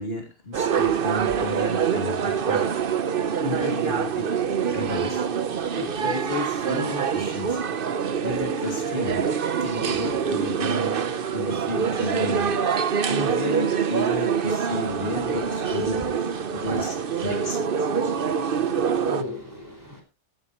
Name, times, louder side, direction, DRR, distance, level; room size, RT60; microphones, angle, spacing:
voice 1, 0.0-2.7 3.4-4.3 4.7-5.3 5.8-7.6 8.2-9.3 9.6-11.0 11.3-12.5 13.1-16.1 16.5-17.6, left 2 dB, 65° left, 3 dB, 2.9 m, -32 dB
sound 1, 0.5-19.2, right 7 dB, 55° right, 1.0 m, -25 dB
voice 2, 14.9-20.0, equal, 15° right, 2 dB, 4.6 m, -40 dB
15.0 x 13.0 x 3.0 m, 0.27 s
omnidirectional pair, 1.1 m